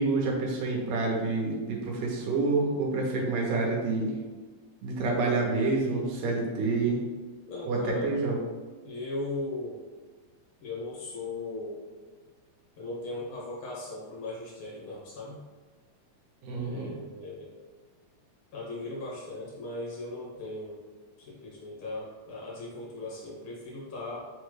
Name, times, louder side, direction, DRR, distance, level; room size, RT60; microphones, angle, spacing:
voice 1, 0.0-4.1 4.8-7.0 7.7-8.4 16.4-16.9, right 3 dB, 80° right, -2 dB, 2.3 m, -28 dB
voice 2, 7.5-8.1 8.8-9.8 10.6-11.8 12.8-15.4 16.6-17.5 18.5-20.8 21.2-24.2, left 2 dB, 90° left, -6 dB, 1.1 m, -38 dB
5.8 x 2.2 x 3.1 m, 1.3 s
omnidirectional pair, 3.8 m